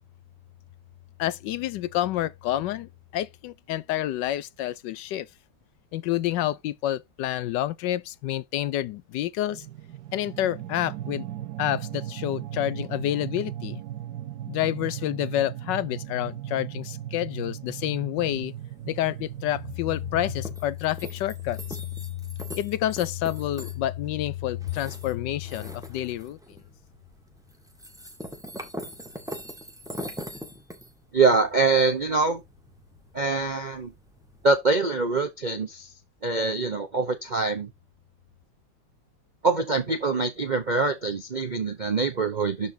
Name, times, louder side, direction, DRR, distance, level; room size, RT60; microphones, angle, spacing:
voice 1, 1.2-5.3 5.9-9.7 10.1-11.2 11.6-13.8 14.5-18.5 18.9-21.8 22.6-26.4, left 13 dB, 75° left, 1.2 m, -28 dB
sound 1, 9.5-20.6, right 12 dB, 65° right, 1.2 m, -37 dB
sound 2, 18.2-34.6, equal, ahead, 1.5 m, -43 dB
voice 2, 31.1-32.4 33.1-33.9 34.4-35.9 36.2-37.7 39.4-42.7, right 3 dB, 50° right, 0.5 m, -24 dB
12.0 x 4.6 x 2.7 m
omnidirectional pair, 2.0 m